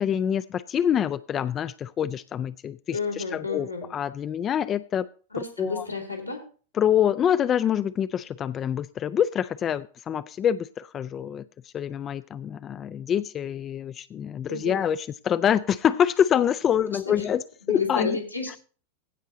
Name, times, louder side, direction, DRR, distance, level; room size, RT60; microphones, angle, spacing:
voice 1, 0.0-5.0 5.6-5.8 6.7-17.4 17.7-18.2, left 9 dB, 25° left, 16 dB, 0.4 m, -26 dB
voice 2, 2.9-3.9 5.3-6.4 14.5-14.8 17.0-17.3 17.6-18.6, left 4 dB, 85° left, 0 dB, 3.1 m, -31 dB
16.0 x 5.5 x 3.9 m, 0.40 s
figure-of-eight pair, 90°, 0 cm